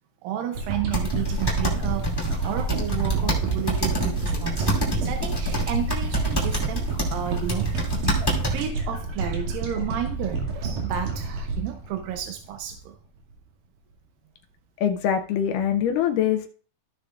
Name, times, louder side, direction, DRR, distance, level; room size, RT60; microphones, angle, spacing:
voice 1, 0.2-8.1 8.5-13.0, right 10 dB, 90° right, 5 dB, 2.5 m, -32 dB
sound 1, 0.6-12.9 13.3-13.4, right 3 dB, 70° right, 3.6 m, -30 dB
sound 2, 0.9-8.7, right 2 dB, 10° left, 1.7 m, -27 dB
voice 2, 14.8-16.5, left 9 dB, 80° left, 6 dB, 2.2 m, -23 dB
15.0 x 6.6 x 2.4 m, 0.42 s
omnidirectional pair, 3.9 m